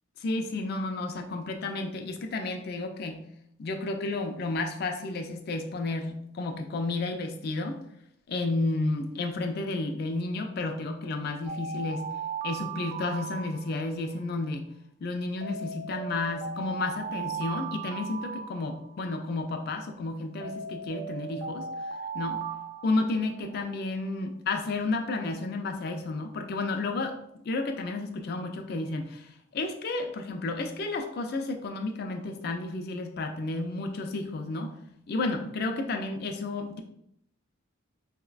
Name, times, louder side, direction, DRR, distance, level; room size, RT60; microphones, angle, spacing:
voice 1, 0.2-3.2 3.6-7.8 8.3-12.0 12.4-14.7 15.0-21.7 22.1-22.4 22.8-27.2 27.4-34.7 35.1-36.8, left 2 dB, 50° left, 5 dB, 0.3 m, -32 dB
Alarm, 11.5-14.1 15.4-19.1 20.4-23.6, right 5 dB, 50° right, 0.3 m, -37 dB
3.8 x 2.1 x 2.3 m, 0.75 s
head